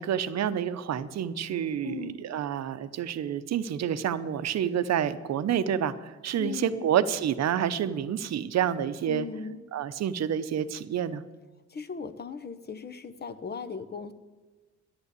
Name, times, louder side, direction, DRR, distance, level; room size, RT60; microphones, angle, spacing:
voice 1, 0.0-9.3 9.7-11.2, right 9 dB, 60° right, 13 dB, 0.8 m, -28 dB
voice 2, 1.8-2.2 6.4-6.9 9.1-9.6 11.7-14.1, left 6 dB, 35° left, 11 dB, 0.9 m, -38 dB
11.0 x 10.5 x 8.2 m, 1.3 s
cardioid pair, 90°, 30 cm